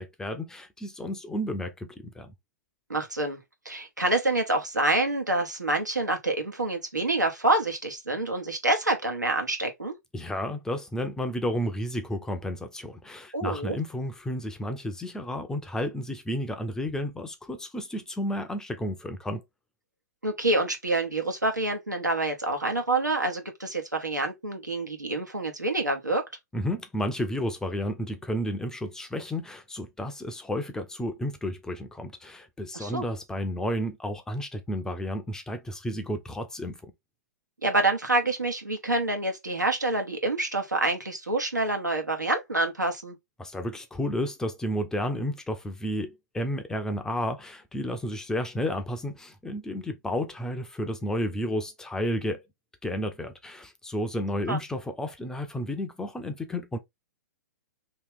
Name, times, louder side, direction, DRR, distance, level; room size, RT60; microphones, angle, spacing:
voice 1, 0.0-2.3 10.1-19.4 26.5-36.9 43.4-52.4 52.8-56.8, equal, 5° left, 0.5 m, -32 dB
voice 2, 2.9-3.4 3.6-9.9 13.3-13.8 20.2-26.2 32.7-33.0 37.6-43.2 54.5-54.6, right 2 dB, 90° right, 1.1 m, -27 dB
2.9 x 2.8 x 3.6 m
figure-of-eight pair, 115°, 9 cm